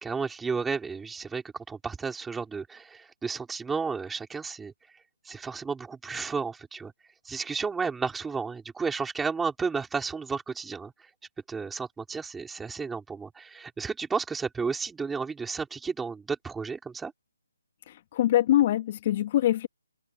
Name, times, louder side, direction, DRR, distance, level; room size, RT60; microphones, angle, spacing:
voice 1, 0.0-4.7 5.2-6.9 7.2-11.1 11.5-17.1, right 5 dB, 5° right, 4.9 m, -32 dB
voice 2, 17.9-19.7, left 13 dB, 35° left, 1.6 m, -24 dB
figure-of-eight pair, 145°, 0 cm